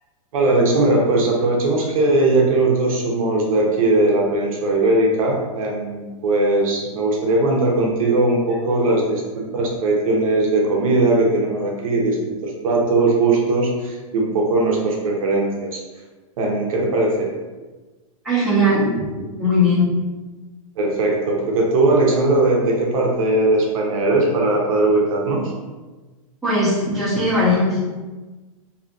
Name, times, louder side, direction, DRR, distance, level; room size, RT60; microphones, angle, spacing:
voice 1, 0.3-15.8 16.4-17.3 18.9-19.0 20.8-25.5, right 2 dB, 70° right, -1 dB, 0.6 m, -19 dB
voice 2, 18.2-18.9 19.4-19.9 26.4-27.8, left 1 dB, ahead, -13 dB, 0.9 m, -18 dB
2.7 x 2.4 x 2.3 m, 1.2 s
supercardioid pair, 160°, 18 cm